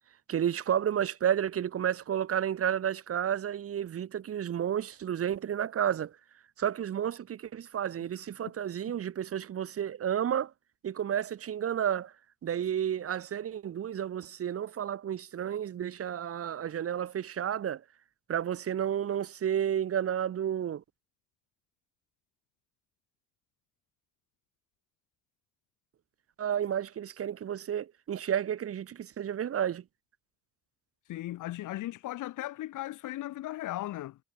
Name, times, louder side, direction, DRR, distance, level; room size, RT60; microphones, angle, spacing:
voice 1, 0.3-6.1 6.6-10.5 10.8-12.1 12.4-17.8 18.3-20.8 26.4-29.8, right 9 dB, 50° right, 1.0 m, -31 dB
voice 2, 31.1-34.2, left 15 dB, 85° left, 2.4 m, -37 dB
cardioid pair, 90°, 30 cm